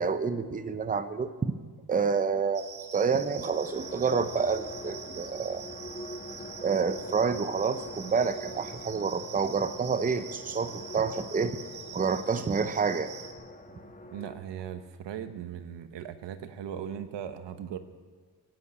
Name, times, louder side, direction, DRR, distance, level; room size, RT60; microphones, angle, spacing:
voice 1, 0.0-1.5 1.9-2.6 2.9-5.6 6.6-11.6 11.9-13.1, right 5 dB, 20° right, 11 dB, 0.7 m, -28 dB
sound 1, 2.5-13.3, right 7 dB, 60° right, 1.7 m, -45 dB
sound 2, 3.0-14.4, left 1 dB, 20° left, 1.5 m, -45 dB
voice 2, 14.1-17.8, right 9 dB, 90° right, 10 dB, 1.1 m, -38 dB
17.0 x 8.4 x 8.7 m, 1.6 s
cardioid pair, 115°, 42 cm